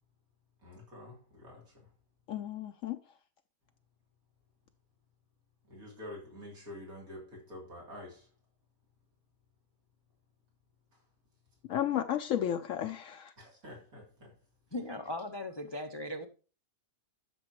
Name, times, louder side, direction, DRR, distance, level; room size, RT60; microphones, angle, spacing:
voice 1, 0.6-1.7 5.7-8.3 13.4-14.3, left 1 dB, 90° right, 3.8 m, -48 dB
voice 2, 2.3-3.0 11.7-13.3, left 10 dB, 70° left, 0.9 m, -33 dB
voice 3, 14.7-16.3, left 1 dB, 35° left, 0.4 m, -38 dB
12.5 x 6.2 x 3.1 m
omnidirectional pair, 1.5 m